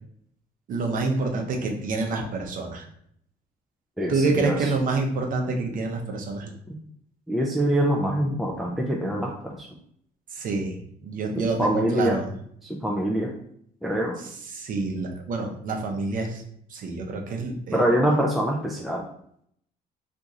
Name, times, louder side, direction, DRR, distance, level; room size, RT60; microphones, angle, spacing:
voice 1, 0.7-2.8 4.1-6.5 10.3-12.3 14.5-16.4 16.7-17.8, right 3 dB, 55° right, 2 dB, 0.8 m, -27 dB
voice 2, 4.0-4.7 6.7-6.8 7.3-9.7 11.4-12.2 12.6-13.3 13.8-14.2 17.7-19.0, equal, ahead, -2 dB, 0.4 m, -25 dB
2.9 x 2.5 x 3.7 m, 0.67 s
cardioid pair, 110°, 17 cm